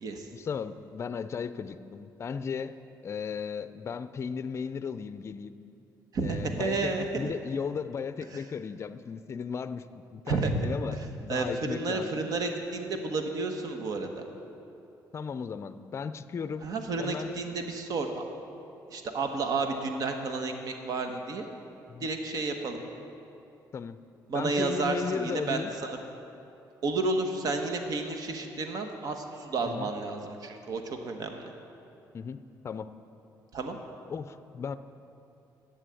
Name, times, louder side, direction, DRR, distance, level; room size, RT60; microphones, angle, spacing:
voice 1, 0.3-2.8 3.0-5.5 6.2-9.8 10.1-12.2 15.1-16.7 17.0-17.3 21.9-22.1 23.7-24.0 24.3-25.7 29.6-29.9 32.1-32.9 34.1-34.8, left 6 dB, 35° left, 12 dB, 0.5 m, -35 dB
voice 2, 6.1-7.3 8.3-8.4 10.3-10.7 11.0-14.2 16.6-18.3 18.9-21.5 22.0-22.8 24.3-26.0 26.8-31.5 33.5-33.8, right 3 dB, 60° right, 5 dB, 1.3 m, -31 dB
11.0 x 8.2 x 8.4 m, 2.7 s
cardioid pair, 120°, 7 cm